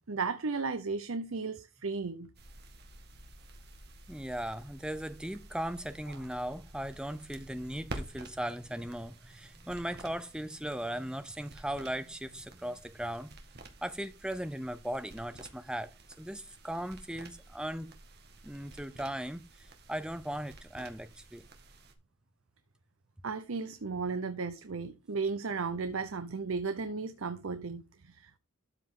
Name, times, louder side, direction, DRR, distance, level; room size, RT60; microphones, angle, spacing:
voice 1, 0.1-2.3 23.2-28.4, right 4 dB, 75° right, 0.7 m, -35 dB
sound 1, 2.3-21.9, right 2 dB, 50° right, 1.6 m, -51 dB
voice 2, 4.1-13.3 13.8-15.9 16.2-17.9 18.4-21.5, right 1 dB, 5° right, 0.5 m, -38 dB
12.5 x 5.4 x 3.7 m
head